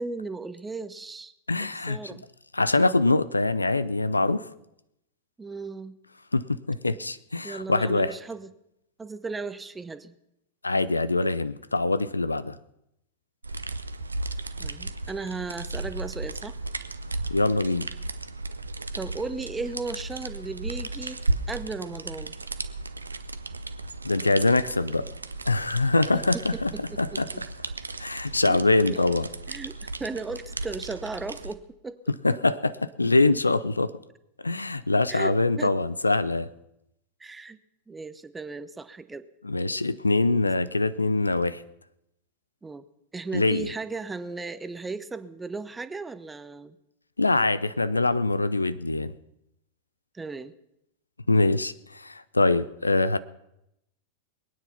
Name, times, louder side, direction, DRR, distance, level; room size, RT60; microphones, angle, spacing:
voice 1, 0.0-1.3 1.6-2.2 5.4-5.9 7.4-8.5 9.0-10.1 14.6-16.6 18.9-21.2 21.5-22.3 26.3-27.4 28.5-28.6 28.9-29.1 29.5-32.0 35.1-35.7 37.2-37.6 37.9-39.2 40.3-40.4 42.6-42.8 43.1-46.8 50.1-50.5, right 3 dB, 10° right, 13 dB, 0.8 m, -36 dB
voice 2, 1.5-2.0 2.5-4.5 6.3-8.2 10.6-12.6 17.3-17.9 24.0-25.1 25.5-26.7 27.0-27.3 28.0-29.3 32.2-33.9 34.4-36.5 39.4-41.6 43.3-43.7 47.2-49.1 51.3-53.2, left 2 dB, 80° left, 16 dB, 0.5 m, -24 dB
sound 1, 13.4-31.5, right 2 dB, 80° right, 0.7 m, -35 dB
22.0 x 9.4 x 5.8 m, 0.82 s
figure-of-eight pair, 90°, 0 cm